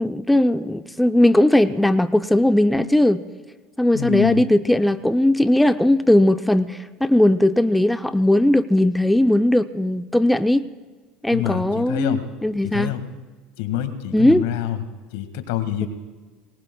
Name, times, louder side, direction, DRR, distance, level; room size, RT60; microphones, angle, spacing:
voice 1, 0.0-3.2 3.8-10.6 11.2-12.9 14.1-14.4, left 1 dB, 5° left, 10 dB, 0.6 m, -18 dB
voice 2, 3.9-4.4 11.3-12.2 12.6-13.0 13.6-14.8 15.1-15.9, left 11 dB, 75° left, 9 dB, 1.7 m, -26 dB
26.0 x 20.0 x 2.3 m, 1.4 s
hypercardioid pair, 90°, 0 cm